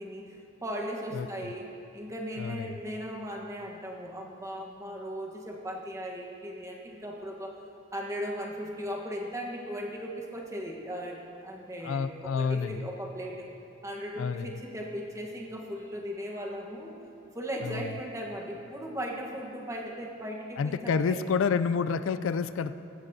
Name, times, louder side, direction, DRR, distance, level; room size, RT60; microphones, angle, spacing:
voice 1, 0.0-7.6 7.9-13.5 13.8-17.0 17.3-21.2, equal, 15° right, -1 dB, 1.1 m, -37 dB
voice 2, 2.4-2.8 11.8-12.9 14.2-14.5 17.6-17.8 20.6-22.7, left 5 dB, 70° left, 12 dB, 0.3 m, -29 dB
15.5 x 14.5 x 2.7 m, 2.7 s
head